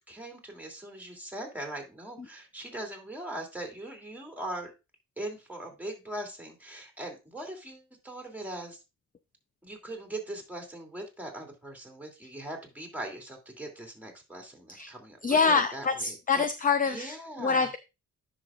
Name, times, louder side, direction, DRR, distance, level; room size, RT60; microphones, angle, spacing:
voice 1, 0.1-4.7 5.2-8.8 9.6-16.4 16.9-17.7, right 1 dB, 5° right, 1 dB, 2.7 m, -40 dB
voice 2, 15.2-17.8, left 5 dB, 25° left, 10 dB, 0.5 m, -26 dB
10.0 x 6.3 x 2.4 m, 0.26 s
cardioid pair, 110°, 35 cm